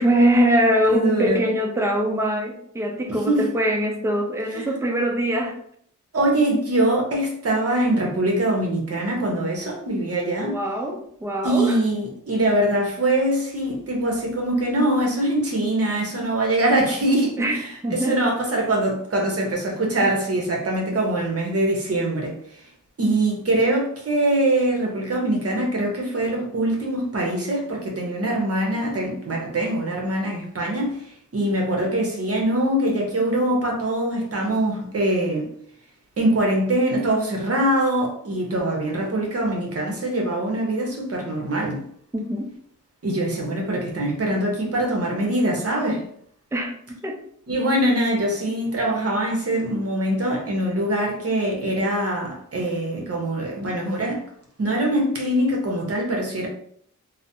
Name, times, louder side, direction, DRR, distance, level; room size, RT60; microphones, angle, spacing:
voice 1, 0.0-5.6 10.4-11.8 17.4-18.2 42.1-42.5 46.5-47.2, equal, 10° right, 0.5 m, -23 dB
voice 2, 0.9-1.4 3.1-3.5 4.5-4.7 6.1-10.6 11.4-22.6 23.0-35.5 36.2-41.8 43.0-46.0 47.5-54.2 54.6-56.5, right 1 dB, 45° right, 0.9 m, -23 dB
3.0 x 2.1 x 2.6 m
wide cardioid pair, 90°, 32 cm